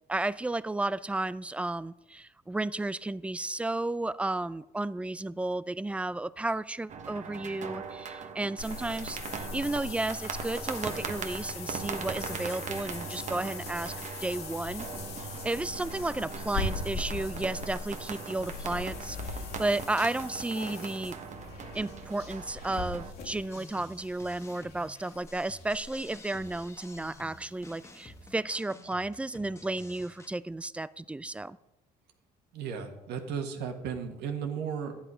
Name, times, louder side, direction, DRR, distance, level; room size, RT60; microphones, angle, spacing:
voice 1, 0.1-13.9 14.2-14.9 15.2-21.2 21.7-31.6, right 2 dB, 5° right, 18 dB, 0.3 m, -33 dB
sound 1, 6.9-23.1, right 6 dB, 45° right, 1.2 m, -40 dB
sound 2, 8.6-27.3 27.6-27.7 28.2-28.3, left 3 dB, 70° left, 2.1 m, -41 dB
sound 3, 23.5-30.3, left 2 dB, 15° left, 1.1 m, -51 dB
voice 2, 32.5-35.0, right 7 dB, 80° right, 4 dB, 1.6 m, -35 dB
12.0 x 10.5 x 4.9 m, 0.95 s
cardioid pair, 110°, 17 cm